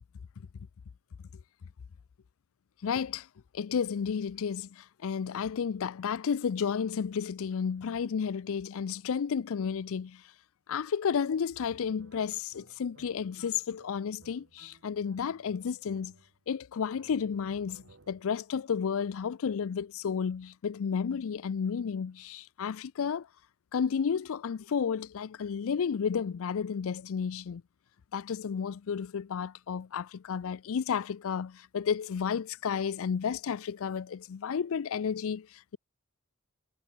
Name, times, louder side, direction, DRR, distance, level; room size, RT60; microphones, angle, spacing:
voice 1, 2.8-3.3 3.5-10.2 10.7-16.1 16.5-23.3 23.7-27.6 28.1-35.8, left 6 dB, 65° left, 0.4 m, -32 dB
sound 1, 11.5-16.5 16.9-18.4, right 3 dB, 60° right, 1.3 m, -60 dB
head